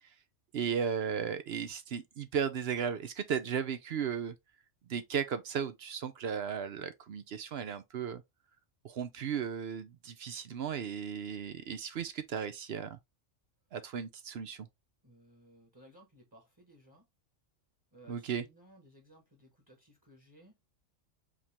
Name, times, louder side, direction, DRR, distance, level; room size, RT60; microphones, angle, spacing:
voice 1, 0.5-4.3 4.9-8.2 8.8-13.0 13.7-14.7 18.1-18.4, right 7 dB, 60° right, 0.8 m, -35 dB
voice 2, 15.0-17.1 17.9-20.6, right 1 dB, 15° right, 1.2 m, -59 dB
5.0 x 2.9 x 3.3 m
omnidirectional pair, 1.3 m